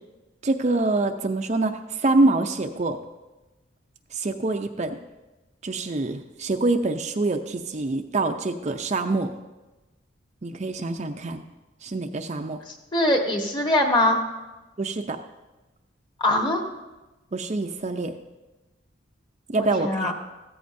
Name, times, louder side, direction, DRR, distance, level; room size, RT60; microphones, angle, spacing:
voice 1, 0.4-3.0 4.1-5.0 5.6-9.3 10.4-11.4 11.8-12.6 14.8-15.2 17.3-18.1 19.5-20.1, right 2 dB, 35° right, 5 dB, 0.5 m, -25 dB
voice 2, 12.9-14.2 16.2-16.6 19.6-20.1, left 1 dB, 25° left, 2 dB, 1.3 m, -22 dB
15.5 x 13.5 x 2.6 m, 1.1 s
head